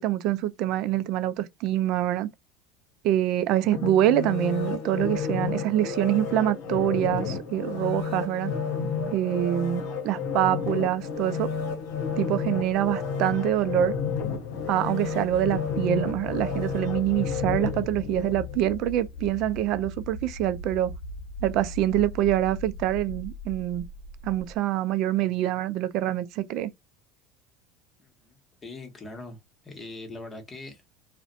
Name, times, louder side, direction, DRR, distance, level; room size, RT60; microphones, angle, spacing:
voice 1, 0.0-2.3 3.0-8.5 9.1-11.5 12.2-13.9 14.7-20.9 21.4-23.9 24.2-26.7, right 12 dB, 60° right, 0.3 m, -25 dB
sound 1, 3.7-18.8 19.2-19.3, left 5 dB, 70° left, 0.7 m, -31 dB
sound 2, 9.8-24.6, left 3 dB, 90° left, 0.3 m, -41 dB
voice 2, 28.0-30.8, left 2 dB, 25° left, 1.0 m, -42 dB
2.4 x 2.1 x 2.5 m
supercardioid pair, 95°, 0 cm